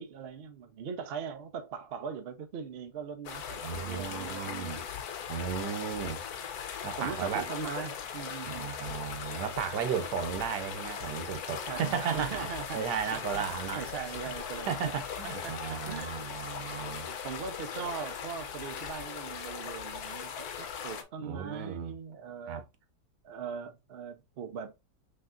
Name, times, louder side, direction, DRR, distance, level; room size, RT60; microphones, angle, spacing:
voice 1, 0.0-4.9 7.0-8.9 11.7-12.8 13.1-14.8 15.4-16.1 16.8-22.7 23.2-24.7, right 6 dB, 60° right, 0.6 m, -40 dB
sound 1, 3.3-21.0, left 8 dB, 70° left, 1.1 m, -39 dB
voice 2, 3.6-4.8 5.3-6.2 6.8-7.4 8.4-13.8 14.7-17.1 21.2-21.9 22.5-22.6, right 7 dB, 80° right, 1.4 m, -35 dB
5.7 x 3.2 x 2.5 m
omnidirectional pair, 1.8 m